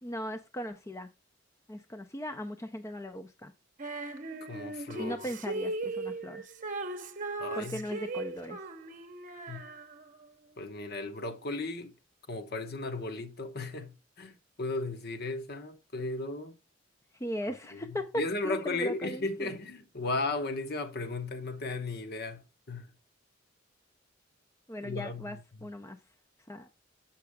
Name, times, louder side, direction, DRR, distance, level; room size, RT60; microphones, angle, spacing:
voice 1, 0.0-1.1 1.7-3.5 5.0-6.5 7.5-8.6 17.2-19.5 24.7-26.0 26.5-26.7, equal, 15° left, 0.5 m, -38 dB
Female singing, 3.8-10.3, right 2 dB, 45° right, 0.8 m, -38 dB
voice 2, 4.4-5.2 7.4-7.8 9.5-9.6 10.6-11.9 12.3-16.6 17.7-22.4 22.7-22.9 24.8-25.7, left 2 dB, 55° left, 1.0 m, -35 dB
7.3 x 5.8 x 3.5 m
head